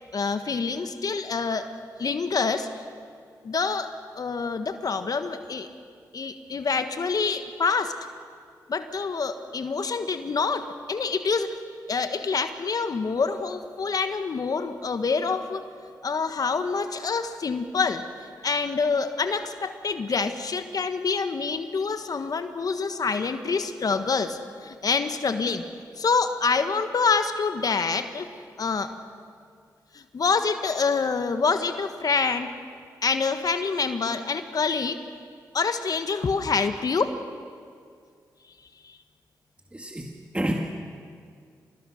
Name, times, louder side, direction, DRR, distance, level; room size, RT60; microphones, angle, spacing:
voice 1, 0.1-1.7 2.0-2.7 3.4-5.7 6.1-8.0 8.7-11.5 11.9-15.6 16.0-18.0 18.4-25.6 26.0-28.3 28.6-28.9 29.9-32.5 33.0-35.0 35.5-37.1 38.8-39.0, left 4 dB, 55° left, 9 dB, 1.4 m, -26 dB
voice 2, 39.7-40.5, right 1 dB, 15° right, 1 dB, 2.1 m, -29 dB
26.0 x 19.5 x 6.5 m, 2.2 s
supercardioid pair, 50°, 8 cm